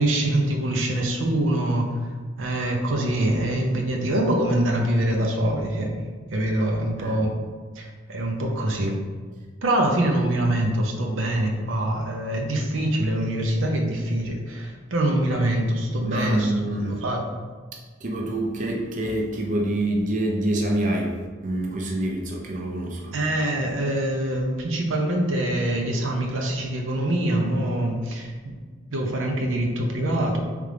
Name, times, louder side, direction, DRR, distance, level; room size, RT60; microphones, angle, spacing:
voice 1, 0.0-1.9 2.4-6.0 6.3-7.3 7.8-9.0 9.6-17.2 23.1-28.5 28.9-30.4, right 1 dB, 85° right, 1 dB, 0.7 m, -24 dB
voice 2, 7.0-7.3 16.0-16.9 17.7-21.2 21.4-23.2, right 1 dB, 40° right, -1 dB, 0.5 m, -26 dB
3.7 x 3.3 x 3.4 m, 1.5 s
head